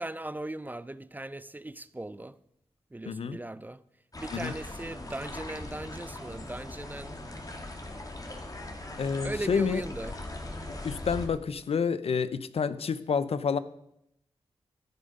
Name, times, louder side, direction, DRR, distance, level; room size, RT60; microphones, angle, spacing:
voice 1, 0.0-2.4 2.9-3.8 4.2-7.2 9.2-10.2, right 1 dB, 15° right, 0.5 m, -38 dB
voice 2, 3.1-3.4 4.3-4.5 9.0-9.8 10.8-13.6, left 6 dB, 65° left, 0.6 m, -29 dB
sound 1, 4.1-11.3, left 2 dB, 35° left, 2.2 m, -40 dB
14.5 x 6.9 x 5.4 m
cardioid pair, 50°, 11 cm